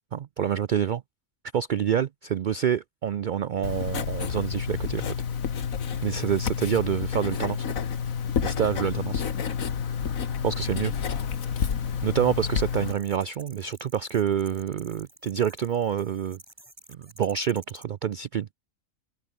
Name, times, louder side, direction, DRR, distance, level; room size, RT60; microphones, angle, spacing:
voice 1, 0.1-1.0 1.5-5.1 6.0-7.6 8.4-9.2 10.4-10.9 12.0-16.4 16.9-18.5, right 8 dB, 85° right, 0.4 m, -27 dB
Writing, 3.6-12.9, left 7 dB, 75° left, 1.8 m, -29 dB
sound 1, 12.7-17.8, right 1 dB, 15° right, 4.8 m, -51 dB
omnidirectional pair, 1.4 m